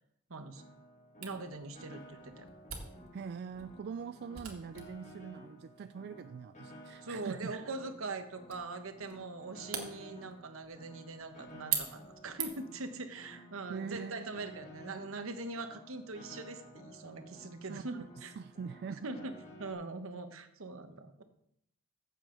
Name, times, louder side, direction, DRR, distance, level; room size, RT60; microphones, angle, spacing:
voice 1, 0.3-0.6 1.2-2.5 7.0-18.4 19.0-19.3 19.6-21.2, right 3 dB, 70° right, 8 dB, 1.1 m, -42 dB
Piano, 0.5-19.7, equal, 35° left, 2.1 m, -54 dB
Camera, 1.2-12.8, right 8 dB, 90° right, 1.8 m, -44 dB
voice 2, 3.1-7.5 13.7-14.3 17.7-17.9 18.4-19.1, right 6 dB, 50° right, 12 dB, 0.3 m, -43 dB
14.5 x 7.1 x 3.9 m, 0.76 s
head